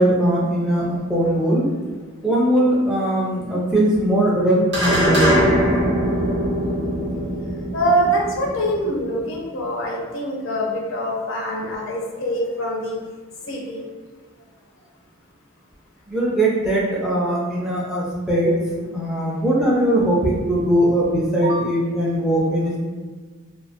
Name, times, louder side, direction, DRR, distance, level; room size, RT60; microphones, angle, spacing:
voice 1, 0.0-1.6 2.2-5.4 16.1-18.6 18.9-22.8, right 1 dB, 5° right, -7 dB, 0.3 m, -20 dB
sound 1, 4.7-9.4, equal, 50° right, 0.7 m, -22 dB
voice 2, 7.7-13.0 13.4-13.8 21.4-21.6, right 1 dB, 70° left, -2 dB, 0.5 m, -24 dB
2.4 x 2.4 x 2.5 m, 1.4 s
head